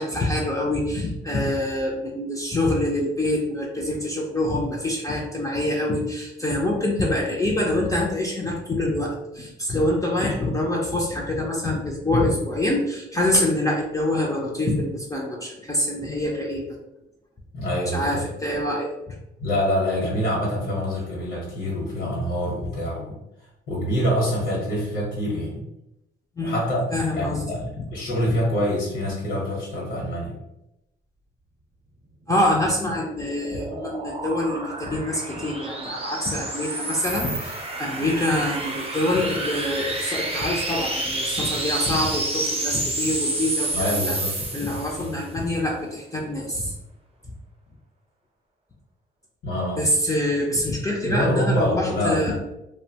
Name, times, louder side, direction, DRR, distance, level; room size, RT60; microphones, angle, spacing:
voice 1, 0.0-16.7 17.9-19.1 26.4-26.6 26.9-27.4 32.3-44.2 44.5-46.7 49.8-52.3, left 1 dB, 15° left, -3 dB, 0.5 m, -25 dB
voice 2, 17.5-18.2 19.4-23.1 23.7-25.6 26.4-26.8 27.1-30.3 43.7-44.4 45.0-45.1 49.4-49.8 51.1-52.3, equal, 70° left, -4 dB, 1.0 m, -25 dB
sound 1, 32.7-45.2, right 2 dB, 30° right, 0.7 m, -29 dB
2.7 x 2.1 x 2.7 m, 0.88 s
cardioid pair, 90°, 20 cm